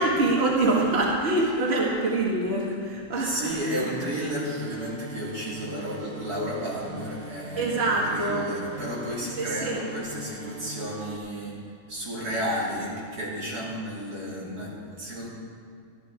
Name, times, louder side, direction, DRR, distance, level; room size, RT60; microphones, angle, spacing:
voice 1, 0.0-3.9 7.6-8.5 9.4-9.8, right 2 dB, 45° right, -2 dB, 1.8 m, -25 dB
voice 2, 3.2-11.6 11.9-15.3, equal, 90° right, -7 dB, 3.7 m, -32 dB
sound 1, 3.5-11.2, right 2 dB, 60° right, 1.3 m, -41 dB
14.0 x 11.5 x 4.9 m, 2.2 s
omnidirectional pair, 1.6 m